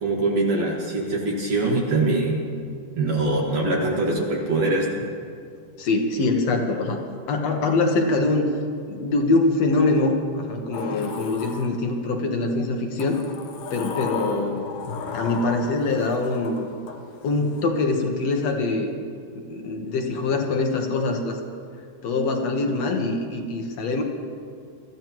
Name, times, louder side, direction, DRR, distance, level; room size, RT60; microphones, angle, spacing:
voice 1, 0.0-2.4 3.0-5.1, right 2 dB, 55° right, -3 dB, 2.7 m, -23 dB
voice 2, 5.8-7.0 7.3-8.5 8.9-10.2 10.5-13.2 13.7-14.7 15.1-16.7 17.2-18.9 19.4-21.4 22.0-24.0, left 3 dB, 60° left, 3 dB, 2.0 m, -23 dB
Sliding door, 10.7-12.2 13.0-17.6, left 5 dB, 80° left, 2.7 m, -34 dB
24.0 x 14.5 x 3.0 m, 2.2 s
omnidirectional pair, 3.9 m